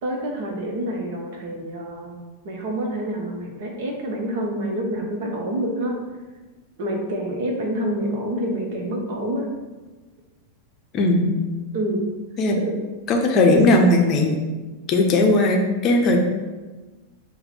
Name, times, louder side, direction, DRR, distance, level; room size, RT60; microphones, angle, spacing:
voice 1, 0.0-2.2 2.4-6.0 6.8-9.5 11.7-12.1 12.7-12.8, right 1 dB, 50° right, 1 dB, 0.9 m, -27 dB
voice 2, 10.9-11.3 12.4-12.6 13.1-14.4 14.9-16.2, left 2 dB, 35° left, 2 dB, 0.6 m, -18 dB
4.8 x 2.2 x 4.7 m, 1.2 s
figure-of-eight pair, 90°, 0 cm